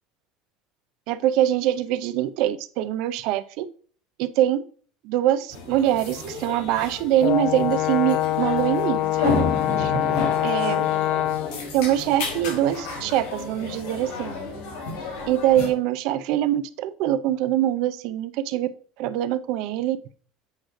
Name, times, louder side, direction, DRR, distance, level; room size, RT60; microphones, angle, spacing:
voice 1, 1.1-3.7 4.2-4.6 5.0-9.4 9.8-10.0 10.4-10.8 11.7-14.5 15.3-18.7 19.0-20.0, right 12 dB, 60° right, 13 dB, 0.6 m, -23 dB
sound 1, 5.5-15.7, left 3 dB, 75° left, 4.4 m, -32 dB
Brass instrument, 7.2-11.6, left 12 dB, 50° left, 0.3 m, -24 dB
8.5 x 3.1 x 6.4 m, 0.43 s
cardioid pair, 155°, 0 cm